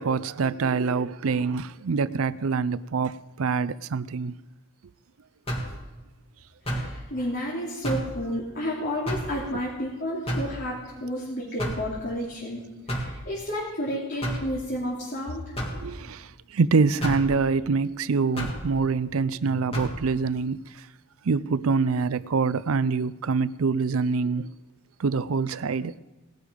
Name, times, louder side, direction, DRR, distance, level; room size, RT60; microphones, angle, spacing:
voice 1, 0.0-3.1 3.4-4.3 15.8-16.2 16.5-20.6 21.3-24.5 25.0-25.9, right 4 dB, 70° right, 0.5 m, -25 dB
sound 1, 5.5-5.8 6.7-6.9 7.8-8.1 9.1-9.3 10.3-10.6 11.6-11.9 12.9-13.2 14.2-14.5 15.6-15.8 17.0-17.3 18.4-18.6 19.7-20.0, equal, 25° left, 2.6 m, -29 dB
voice 2, 6.6-15.5, equal, 50° left, 3.1 m, -31 dB
18.5 x 12.0 x 5.2 m
head